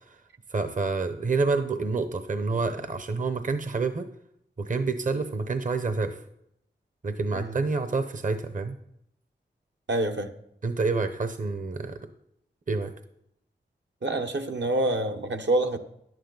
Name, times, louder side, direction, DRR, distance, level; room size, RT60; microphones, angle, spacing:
voice 1, 0.5-4.1 4.6-6.2 7.0-8.8 10.6-12.0 12.7-12.9, right 4 dB, 45° right, 0.8 m, -28 dB
voice 2, 9.9-10.3 14.0-15.8, right 2 dB, 65° right, 1.1 m, -26 dB
11.0 x 9.3 x 3.9 m
cardioid pair, 50°, 19 cm